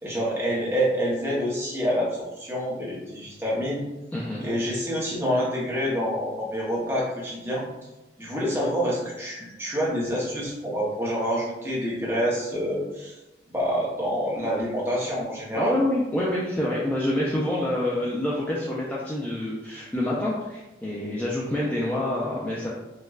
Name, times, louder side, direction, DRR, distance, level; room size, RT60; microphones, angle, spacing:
voice 1, 0.0-3.8 4.4-7.6 8.2-13.2 13.5-15.8, equal, 15° right, -6 dB, 0.8 m, -27 dB
voice 2, 4.1-4.5 15.5-22.7, left 1 dB, 10° left, -6 dB, 0.3 m, -27 dB
4.4 x 2.2 x 2.3 m, 1.0 s
head